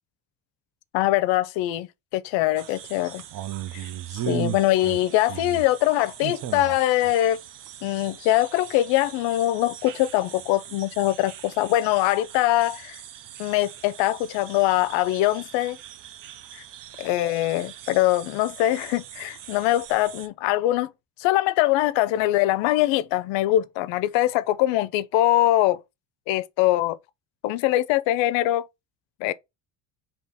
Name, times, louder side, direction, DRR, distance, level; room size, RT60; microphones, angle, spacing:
voice 1, 0.9-1.9 2.1-3.2 3.7-3.8 4.3-7.4 7.8-13.0 13.4-15.8 16.5-16.6 17.0-20.9 21.2-25.8 26.3-27.0 27.4-28.7 29.2-29.3, left 15 dB, 85° left, 0.5 m, -22 dB
sound 1, 2.6-20.3, right 12 dB, 50° right, 0.6 m, -39 dB
3.6 x 2.9 x 4.0 m
cardioid pair, 135°, 43 cm